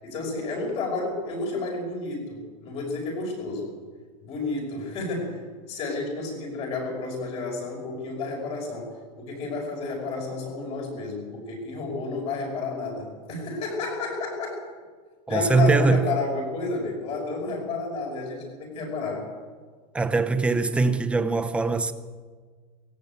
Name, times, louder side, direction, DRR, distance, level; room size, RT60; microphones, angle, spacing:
voice 1, 0.0-3.7 4.2-5.4 5.7-14.7 15.3-19.3, left 3 dB, 30° left, 5.9 m, -31 dB
voice 2, 15.3-16.0 19.9-21.9, right 3 dB, 5° right, 0.7 m, -22 dB
19.0 x 17.0 x 8.1 m
supercardioid pair, 170°, 20 cm